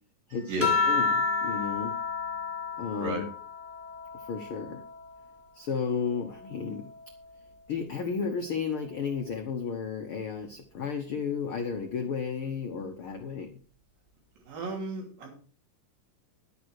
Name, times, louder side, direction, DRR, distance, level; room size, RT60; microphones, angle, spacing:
voice 1, 0.3-0.7 3.0-3.2 14.4-15.3, right 1 dB, 80° right, 1 dB, 4.8 m, -34 dB
sound 1, 0.6-5.4 5.9-7.6 8.8-9.3, left 4 dB, 5° left, 1.1 m, -32 dB
voice 2, 0.8-1.9 2.8-3.3 4.1-4.8 5.5-6.9 7.7-13.5, left 6 dB, 75° left, 5 dB, 1.2 m, -33 dB
11.5 x 9.3 x 4.7 m, 0.40 s
omnidirectional pair, 4.0 m